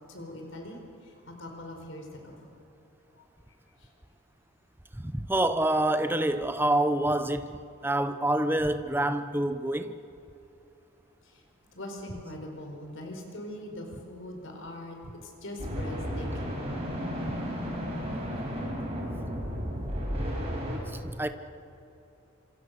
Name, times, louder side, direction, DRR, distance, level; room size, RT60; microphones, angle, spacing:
voice 1, 0.1-0.8 1.0-2.5 3.2-3.3 3.8-3.9 11.3-11.4 11.7-15.0 15.2-16.6, left 1 dB, 70° left, 4.6 m, -42 dB
voice 2, 5.0-9.9 18.1-18.2 21.2-21.3, right 1 dB, 10° right, 0.8 m, -27 dB
sound 1, 15.6-20.8, equal, 30° right, 6.3 m, -33 dB
27.0 x 27.0 x 6.6 m
head